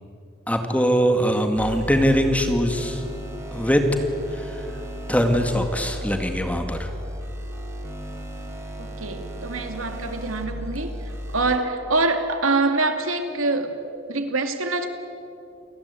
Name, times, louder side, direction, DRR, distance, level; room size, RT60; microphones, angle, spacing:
voice 1, 0.5-3.0 3.5-3.8 4.3-4.7 5.1-6.9, equal, 5° left, 5 dB, 2.2 m, -22 dB
sound 1, 1.6-11.6, equal, 15° right, 3.9 m, -34 dB
voice 2, 8.8-10.9 11.3-13.7 14.1-14.9, right 3 dB, 85° right, 6 dB, 2.7 m, -25 dB
28.5 x 20.5 x 8.6 m, 2.6 s
head